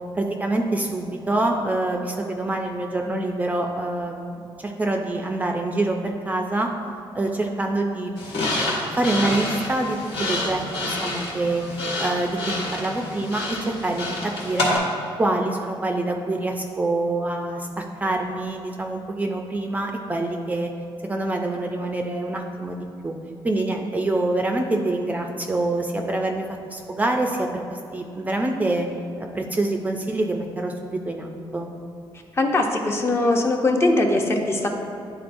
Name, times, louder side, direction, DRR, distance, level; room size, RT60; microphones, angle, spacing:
voice 1, 0.2-6.7 7.1-8.1 9.0-11.6 12.0-14.8 15.2-20.7 21.0-23.1 23.4-28.9 29.3-31.7, right 2 dB, 15° right, 2 dB, 0.4 m, -26 dB
sound 1, 8.2-14.8, left 2 dB, 85° left, 1.4 m, -28 dB
voice 2, 32.4-34.7, left 2 dB, 30° left, 2 dB, 0.6 m, -21 dB
10.5 x 3.9 x 2.6 m, 2.7 s
cardioid pair, 150°, 9 cm